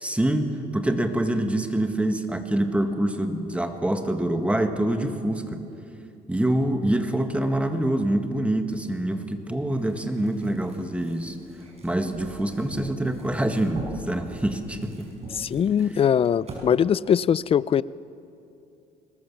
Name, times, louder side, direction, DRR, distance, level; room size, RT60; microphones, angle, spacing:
voice 1, 0.0-5.6 6.3-11.4 11.8-15.1, right 1 dB, 5° right, 6 dB, 1.6 m, -25 dB
sound 1, 9.7-16.6, right 2 dB, 40° right, 5.3 m, -42 dB
voice 2, 15.3-17.8, left 8 dB, 35° left, 20 dB, 0.4 m, -21 dB
22.0 x 19.0 x 7.1 m, 2.7 s
cardioid pair, 110°, 17 cm